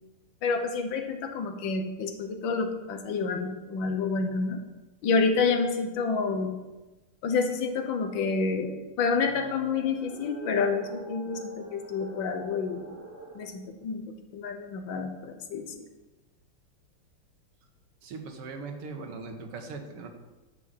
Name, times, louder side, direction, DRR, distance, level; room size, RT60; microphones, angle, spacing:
voice 1, 0.4-4.6 5.0-6.6 7.2-13.0 13.4-15.7, left 4 dB, 65° left, 6 dB, 1.6 m, -29 dB
sound 1, 9.1-13.5, right 1 dB, 55° right, 5.0 m, -44 dB
voice 2, 18.0-20.1, right 4 dB, 85° right, 4 dB, 2.2 m, -39 dB
10.5 x 5.6 x 7.4 m, 1.1 s
omnidirectional pair, 2.4 m